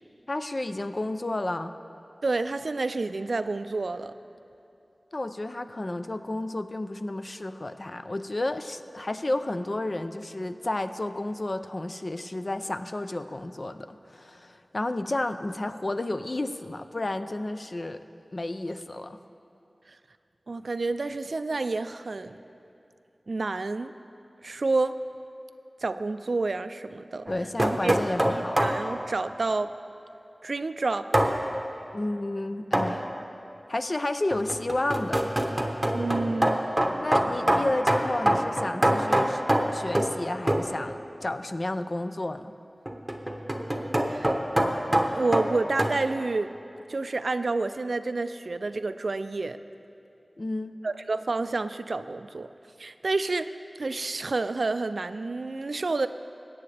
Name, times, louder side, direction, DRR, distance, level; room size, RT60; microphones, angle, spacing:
voice 1, 0.3-1.7 5.1-18.0 18.3-19.2 27.3-28.6 31.9-33.1 33.7-35.3 37.0-39.4 39.7-42.5 50.4-50.8, left 2 dB, 50° left, 10 dB, 0.4 m, -31 dB
voice 2, 2.2-4.1 20.5-22.4 23.3-23.9 24.4-25.0 25.8-27.3 27.6-27.9 28.3-29.7 30.4-31.3 35.9-36.6 44.1-44.3 45.1-46.5 46.9-49.6 50.8-52.5 52.8-53.5 53.8-56.1, right 3 dB, 80° right, 12 dB, 0.3 m, -29 dB
sound 1, 27.3-28.8 31.1-31.4 32.7-33.0 34.3-40.2 40.5-40.7 42.9-46.0, right 1 dB, 20° right, 0.9 m, -25 dB
21.0 x 8.5 x 3.3 m, 2.7 s
wide cardioid pair, 65°, 0 cm